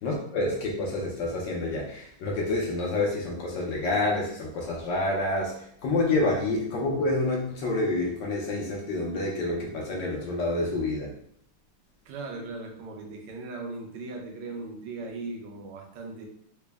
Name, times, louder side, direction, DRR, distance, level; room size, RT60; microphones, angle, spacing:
voice 1, 0.0-11.1, left 2 dB, 70° left, -2 dB, 1.2 m, -28 dB
voice 2, 12.0-16.3, right 3 dB, 90° right, 1 dB, 1.6 m, -38 dB
4.0 x 2.0 x 3.3 m, 0.65 s
omnidirectional pair, 2.4 m